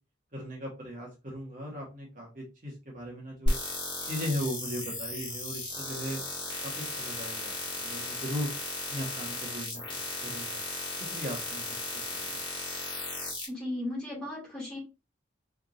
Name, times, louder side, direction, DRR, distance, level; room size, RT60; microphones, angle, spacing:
voice 1, 0.3-3.6 4.0-6.2 6.6-8.5 8.9-10.6 11.1-11.7 12.2-12.4, equal, 45° right, -3 dB, 1.5 m, -38 dB
sound 1, 3.5-13.4, left 2 dB, 25° left, 2.2 m, -35 dB
voice 2, 13.5-14.8, left 1 dB, 5° left, -6 dB, 2.6 m, -36 dB
4.5 x 3.6 x 2.6 m, 0.27 s
head